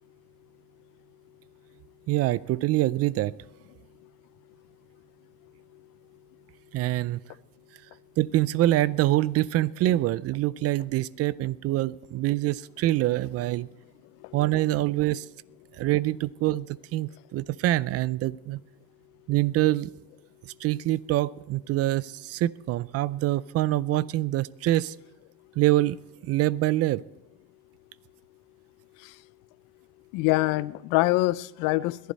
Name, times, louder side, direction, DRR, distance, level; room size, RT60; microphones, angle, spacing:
voice 1, 2.1-3.3 6.7-7.2 8.2-13.7 14.3-15.3 15.7-18.6 19.3-19.9 20.6-25.0 25.6-26.0 26.2-27.0, right 15 dB, 50° right, 20 dB, 0.4 m, -25 dB
voice 2, 30.1-32.1, left 19 dB, 80° left, 18 dB, 0.5 m, -25 dB
21.0 x 11.5 x 4.1 m, 0.88 s
cardioid pair, 135°, 31 cm